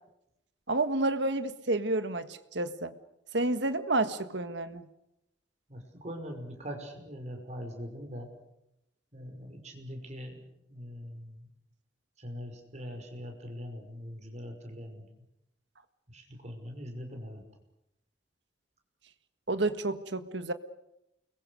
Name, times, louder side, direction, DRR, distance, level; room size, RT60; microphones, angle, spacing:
voice 1, 0.7-2.9 3.3-4.9 19.5-20.5, right 2 dB, 70° right, 10 dB, 1.6 m, -30 dB
voice 2, 5.7-8.3 9.1-10.4 10.7-11.3 12.2-15.0 16.1-17.4, equal, 40° right, 4 dB, 5.5 m, -42 dB
29.5 x 22.5 x 6.5 m, 0.84 s
head